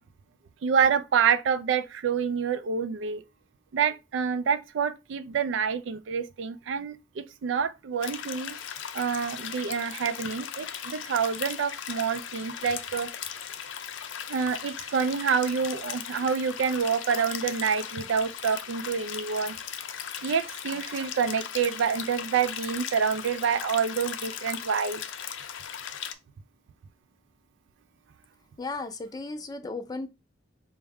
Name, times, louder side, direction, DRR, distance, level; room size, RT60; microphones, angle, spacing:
voice 1, 0.6-3.2 3.7-8.6 8.9-13.1 14.3-19.6 20.2-25.0, right 6 dB, 75° right, 0.3 m, -27 dB
sound 1, 8.0-26.1, left 8 dB, 75° left, 0.5 m, -38 dB
voice 2, 28.6-30.1, left 3 dB, 20° left, 0.4 m, -35 dB
4.5 x 2.1 x 3.4 m
head